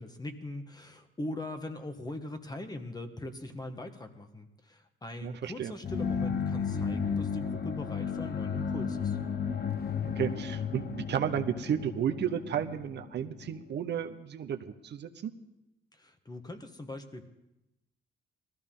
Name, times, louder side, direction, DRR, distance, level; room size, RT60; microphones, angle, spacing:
voice 1, 0.0-9.2 15.9-17.3, left 1 dB, 20° left, 7 dB, 1.4 m, -41 dB
voice 2, 5.2-5.7 10.2-15.3, right 9 dB, 60° right, 7 dB, 0.8 m, -33 dB
sound 1, 5.8-13.6, left 6 dB, 50° left, 0.9 m, -33 dB
19.5 x 14.0 x 3.8 m, 0.93 s
cardioid pair, 90°, 20 cm